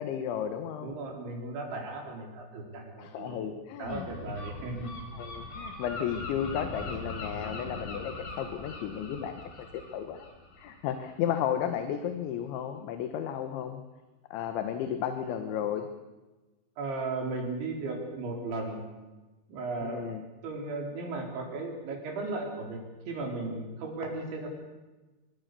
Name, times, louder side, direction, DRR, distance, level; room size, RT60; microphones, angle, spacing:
voice 1, 0.0-0.9 3.0-4.1 5.1-9.7 9.9-10.3 10.6-13.8 14.3-15.9 19.8-20.2, left 9 dB, 85° left, 7 dB, 3.7 m, -33 dB
voice 2, 0.8-5.0 16.8-18.9 19.5-20.0 20.4-22.8 23.1-24.5, right 3 dB, 85° right, 1 dB, 6.6 m, -36 dB
Gull seagull, 3.8-11.4, left 2 dB, 50° left, 6.1 m, -41 dB
24.5 x 23.5 x 6.9 m, 1.2 s
omnidirectional pair, 5.2 m